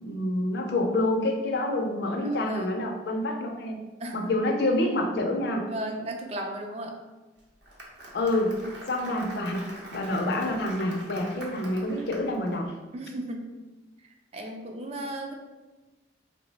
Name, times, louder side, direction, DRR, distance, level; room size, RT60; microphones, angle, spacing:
voice 1, 0.0-3.8 4.1-5.6 8.1-8.6 8.9-9.7 9.9-12.7, left 1 dB, 55° left, 2 dB, 0.4 m, -27 dB
voice 2, 2.2-2.8 4.0-4.3 5.7-7.0 12.9-13.5 14.0-15.3, right 1 dB, 35° right, 3 dB, 0.3 m, -36 dB
Applause, 7.4-12.5, right 1 dB, 65° right, 0.7 m, -44 dB
2.9 x 2.0 x 3.9 m, 1.2 s
head